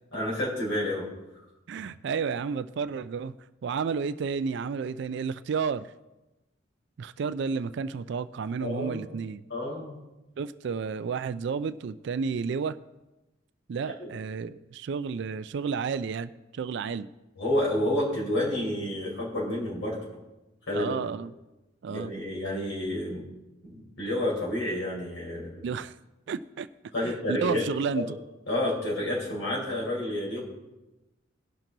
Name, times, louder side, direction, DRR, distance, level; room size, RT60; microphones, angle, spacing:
voice 1, 0.1-1.1 8.6-9.1 9.5-10.0 14.0-14.1 17.4-20.0 20.7-21.0 21.9-23.2 23.6-25.6 26.9-27.7 27.9-28.1 28.5-30.4, left 1 dB, 75° left, -4 dB, 4.1 m, -29 dB
voice 2, 1.7-3.4 3.6-5.9 7.0-9.4 10.4-12.8 13.7-17.1 20.7-21.3 21.8-22.1 25.6-25.9 26.3-26.7 27.0-28.2, right 5 dB, 65° right, 13 dB, 0.3 m, -31 dB
18.0 x 6.0 x 3.9 m, 1.0 s
head